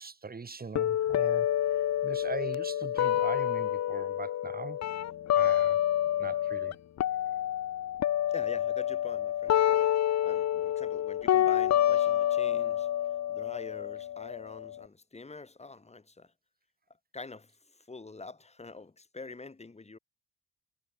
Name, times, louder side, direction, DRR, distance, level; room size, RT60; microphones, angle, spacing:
voice 1, 0.0-1.5 2.0-4.8 5.3-5.8 6.2-6.7, right 4 dB, 30° right, 3.8 m, -40 dB
sound 1, 0.8-6.7 7.0-14.8, left 11 dB, 60° left, 1.3 m, -28 dB
voice 2, 8.3-10.0 10.2-16.3 17.1-20.0, left 3 dB, 20° left, 5.1 m, -46 dB
cardioid pair, 90°, 30 cm